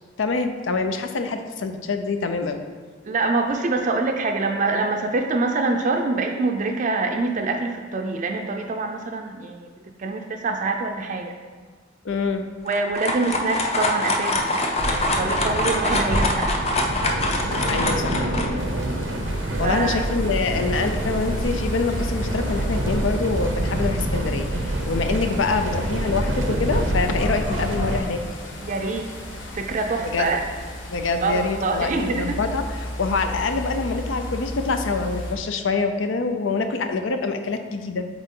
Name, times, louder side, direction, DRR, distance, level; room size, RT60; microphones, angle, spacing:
voice 1, 0.2-2.6 12.0-12.5 17.7-18.2 19.6-28.2 30.0-30.3 30.9-38.1, left 4 dB, 85° left, 7 dB, 0.6 m, -25 dB
voice 2, 3.0-9.7 10.0-11.3 12.6-16.5 19.6-20.0 28.6-29.1 29.5-30.4 31.2-32.4, right 3 dB, 40° right, 3 dB, 0.4 m, -25 dB
sound 1, 12.7-18.5, left 2 dB, 35° left, 0.6 m, -24 dB
sound 2, 14.8-28.0, right 1 dB, 90° right, 0.7 m, -26 dB
sound 3, 18.6-35.3, left 1 dB, 70° left, 1.0 m, -34 dB
8.1 x 3.8 x 3.7 m, 1.5 s
head